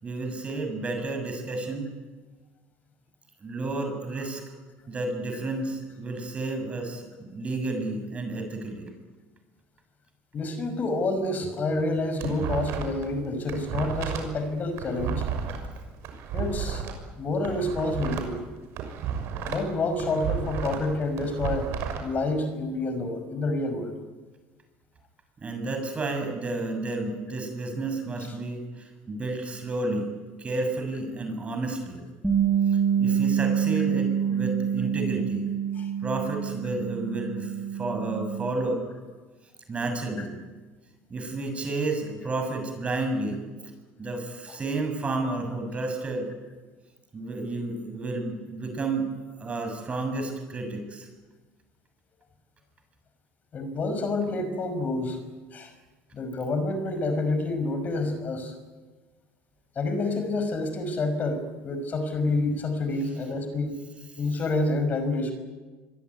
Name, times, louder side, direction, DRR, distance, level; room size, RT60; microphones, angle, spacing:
voice 1, 0.0-1.9 3.4-4.5 4.9-8.9 25.4-30.1 30.4-32.0 32.7-35.5 36.0-38.8 39.7-40.4 41.1-43.4 44.0-46.3 47.1-49.1 49.4-51.1, right 2 dB, 25° right, 5 dB, 6.9 m, -31 dB
voice 2, 10.3-15.2 16.3-16.9 17.2-18.4 19.4-21.7 22.0-23.9 35.8-35.9 40.2-40.3 53.5-55.2 55.5-55.7 56.1-58.5 59.8-63.8 64.2-65.3, left 2 dB, 35° left, 8 dB, 5.7 m, -28 dB
sound 1, 11.8-13.1 13.3-16.9 17.3-19.7 20.0-22.0, right 8 dB, 65° right, 6.3 m, -32 dB
Bass guitar, 32.2-38.5, right 8 dB, 5° right, 6.2 m, -26 dB
26.0 x 23.0 x 9.5 m, 1.3 s
cardioid pair, 115°, 5 cm